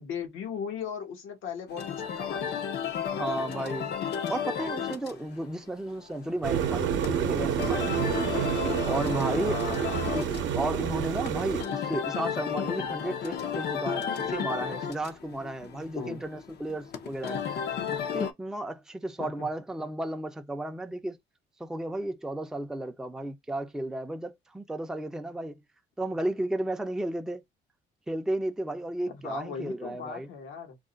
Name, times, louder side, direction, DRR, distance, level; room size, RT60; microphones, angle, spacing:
voice 1, 0.0-2.6 8.7-8.8 9.5-10.2 16.0-16.2 19.2-19.5 29.1-30.8, left 7 dB, 85° left, 1.0 m, -38 dB
sound 1, 1.7-18.3, left 7 dB, 55° left, 0.5 m, -34 dB
voice 2, 3.1-8.2 8.9-9.6 10.1-17.5 18.1-21.2 21.6-25.6 26.0-27.4 28.1-30.3, right 1 dB, 5° right, 0.4 m, -33 dB
sound 2, 6.4-11.6, right 8 dB, 70° right, 0.6 m, -28 dB
2.4 x 2.1 x 3.7 m
cardioid pair, 90°, 20 cm